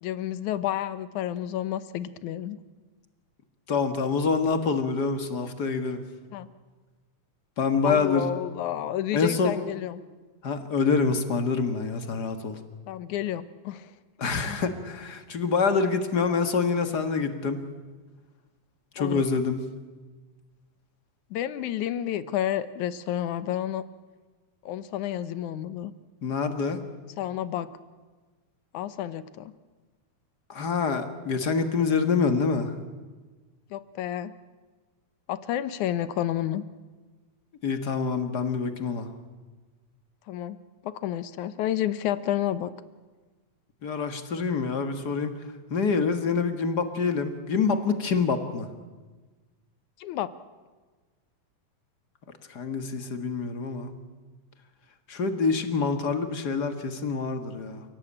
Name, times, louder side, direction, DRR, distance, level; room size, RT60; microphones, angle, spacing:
voice 1, 0.0-2.6 6.3-6.5 7.8-10.0 12.9-13.9 19.0-19.3 21.3-23.8 24.7-25.9 27.2-27.7 28.7-29.5 33.7-34.3 35.3-36.6 40.3-42.7 50.0-50.3 55.3-55.4, left 11 dB, 70° left, 14 dB, 2.2 m, -30 dB
voice 2, 3.7-6.0 7.6-8.3 9.1-9.5 10.4-12.6 14.2-17.6 18.9-19.6 26.2-26.8 30.5-32.7 37.6-39.1 43.8-45.3 45.7-48.7 52.5-53.9 55.1-57.8, left 5 dB, 40° left, 8 dB, 1.6 m, -26 dB
29.5 x 17.5 x 8.8 m, 1.3 s
omnidirectional pair, 3.8 m